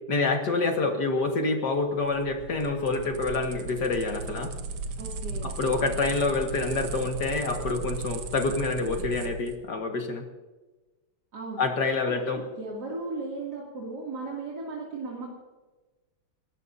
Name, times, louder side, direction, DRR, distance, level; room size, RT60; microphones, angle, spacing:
voice 1, 0.1-4.5 5.4-10.2 11.6-12.4, left 3 dB, 60° left, 3 dB, 2.2 m, -27 dB
sound 1, 1.9-9.6, right 3 dB, 80° right, 1.9 m, -36 dB
voice 2, 5.0-5.6 11.3-11.6 12.0-15.3, right 3 dB, 55° right, -4 dB, 3.3 m, -36 dB
30.0 x 14.0 x 2.7 m, 1.2 s
omnidirectional pair, 2.1 m